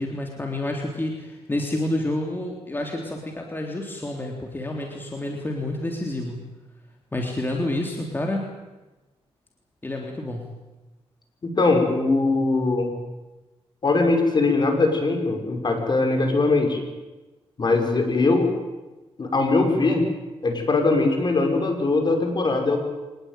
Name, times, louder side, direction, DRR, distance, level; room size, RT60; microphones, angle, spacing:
voice 1, 0.0-6.4 7.1-8.5 9.8-10.5, left 1 dB, 20° left, 1 dB, 3.6 m, -29 dB
voice 2, 11.4-12.9 13.8-16.8 17.6-18.5 19.2-20.0 20.4-22.8, left 3 dB, 45° left, 4 dB, 6.0 m, -21 dB
25.0 x 20.0 x 9.3 m, 1.1 s
cardioid pair, 100°, 11 cm